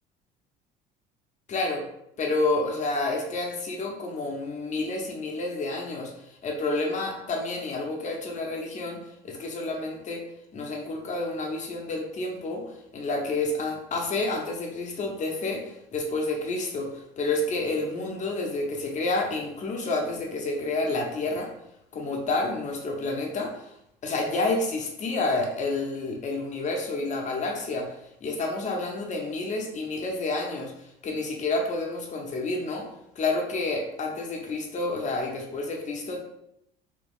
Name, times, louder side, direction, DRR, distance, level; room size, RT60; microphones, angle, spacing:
voice 1, 1.5-1.8 2.2-10.2 10.5-12.6 12.9-21.5 21.9-23.6 24.0-27.9 28.2-32.9 33.2-36.2, left 2 dB, 40° left, 1 dB, 0.8 m, -29 dB
3.1 x 2.3 x 3.5 m, 0.81 s
cardioid pair, 110°, 19 cm